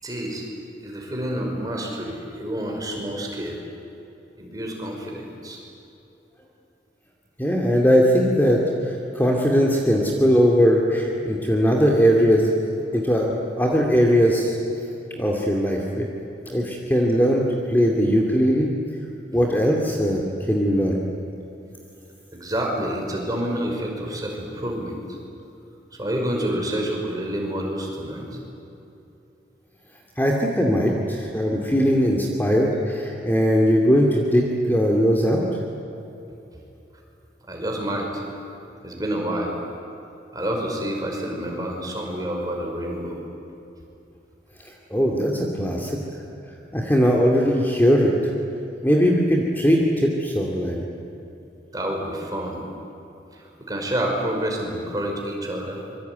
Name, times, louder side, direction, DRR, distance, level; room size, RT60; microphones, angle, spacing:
voice 1, 0.0-0.5 0.8-3.6 4.4-5.6 22.3-25.2 26.0-28.4 37.5-38.5 38.8-39.6 40.3-43.2 51.7-52.6 53.3-55.8, right 1 dB, 20° right, 0 dB, 5.5 m, -28 dB
voice 2, 7.4-12.5 12.9-13.3 13.6-14.6 15.2-16.1 16.5-18.7 19.3-21.0 30.2-35.4 44.9-46.0 46.7-48.1 48.8-50.9, equal, 10° left, -1 dB, 2.5 m, -20 dB
26.0 x 24.0 x 9.5 m, 2.9 s
head